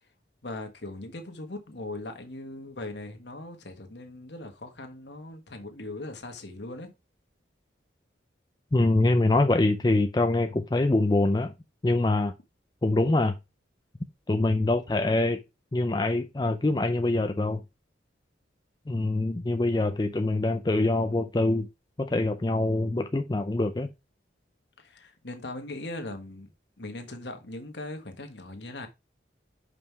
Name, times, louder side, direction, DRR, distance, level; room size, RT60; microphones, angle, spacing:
voice 1, 0.4-6.9 24.8-26.5 26.8-28.9, left 2 dB, 70° left, 1.4 m, -39 dB
voice 2, 8.7-11.5 11.8-12.3 12.8-13.4 14.3-15.4 15.7-17.6 18.9-21.7 22.0-23.9, left 2 dB, 20° left, 0.4 m, -24 dB
5.5 x 4.9 x 4.5 m
head